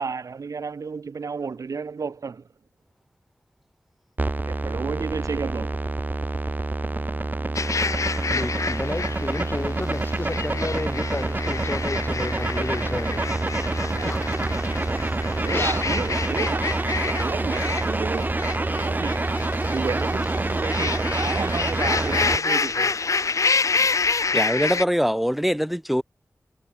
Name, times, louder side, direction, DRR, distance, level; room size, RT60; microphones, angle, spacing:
voice 1, 0.0-2.4 4.4-5.8 8.4-8.5 13.9-14.1 15.3-19.2 19.7-23.1 23.8-23.9, right 5 dB, 90° right, 1.9 m, -32 dB
sound 1, 4.2-22.4, right 2 dB, 35° right, 1.5 m, -27 dB
sound 2, 6.8-15.4, right 3 dB, 50° right, 5.3 m, -45 dB
sound 3, 7.6-24.9, left 4 dB, 70° left, 1.6 m, -28 dB
voice 2, 8.3-13.2 14.0-14.2 15.5-16.1, left 2 dB, 35° left, 6.0 m, -32 dB
voice 3, 24.3-26.0, equal, 5° right, 1.2 m, -23 dB
wide cardioid pair, 70°, 6 cm